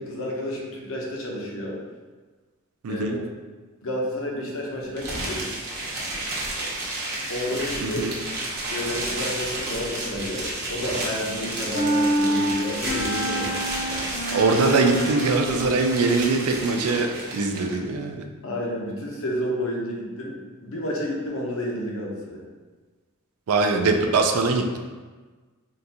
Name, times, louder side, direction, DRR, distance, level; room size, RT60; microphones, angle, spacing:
voice 1, 0.0-1.8 2.9-3.2 3.8-5.4 7.3-8.0 8.7-13.6 18.4-22.4, equal, 65° left, -2 dB, 0.7 m, -30 dB
voice 2, 2.8-3.2 7.8-8.1 14.3-17.1 17.3-18.2 23.5-24.8, right 3 dB, 75° right, 5 dB, 0.4 m, -22 dB
sound 1, 5.0-17.7, right 2 dB, 45° right, 0.8 m, -31 dB
sound 2, 11.7-15.6, equal, 30° left, 0.7 m, -27 dB
3.7 x 2.3 x 2.7 m, 1.4 s
head